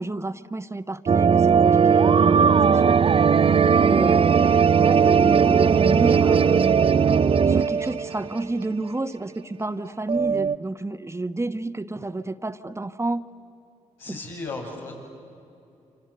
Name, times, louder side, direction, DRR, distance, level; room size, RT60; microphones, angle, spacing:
voice 1, 0.0-3.0 3.8-6.6 7.5-13.3 14.1-14.2, right 2 dB, 20° right, 11 dB, 1.1 m, -30 dB
sound 1, 1.1-8.6 8.8-8.9 10.1-10.6, right 6 dB, 40° right, 0.6 m, -18 dB
voice 2, 14.0-14.9, left 3 dB, 90° left, -5 dB, 7.2 m, -35 dB
28.0 x 26.5 x 7.9 m, 2.7 s
hypercardioid pair, 40°, 15 cm